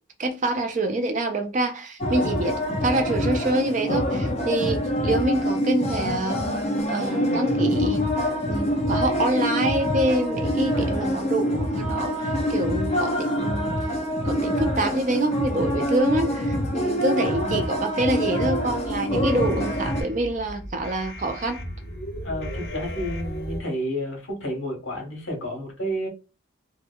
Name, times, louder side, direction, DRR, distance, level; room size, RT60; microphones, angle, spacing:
voice 1, 0.2-6.4 6.9-8.0 8.5-13.7 14.2-21.6, right 1 dB, 35° right, 0.4 m, -26 dB
sound 1, 2.0-20.0, equal, 30° left, 0.4 m, -25 dB
sound 2, 18.6-23.6, equal, 50° left, 0.9 m, -36 dB
voice 2, 22.2-26.1, equal, 75° left, 1.1 m, -30 dB
2.9 x 2.1 x 2.2 m
head